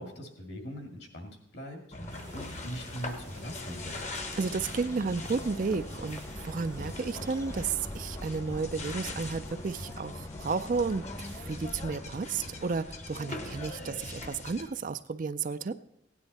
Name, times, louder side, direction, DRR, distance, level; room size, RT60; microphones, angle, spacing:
voice 1, 0.0-1.8 2.3-4.0, equal, 60° left, 4 dB, 2.1 m, -41 dB
sound 1, 1.9-14.7, left 2 dB, 35° left, 1.0 m, -41 dB
Bird, 2.0-13.4, left 1 dB, 15° left, 0.5 m, -47 dB
sound 2, 2.1-8.2, right 4 dB, 65° right, 0.9 m, -53 dB
voice 2, 4.4-15.7, right 4 dB, 45° right, 12 dB, 0.4 m, -32 dB
16.5 x 9.8 x 4.1 m, 0.79 s
head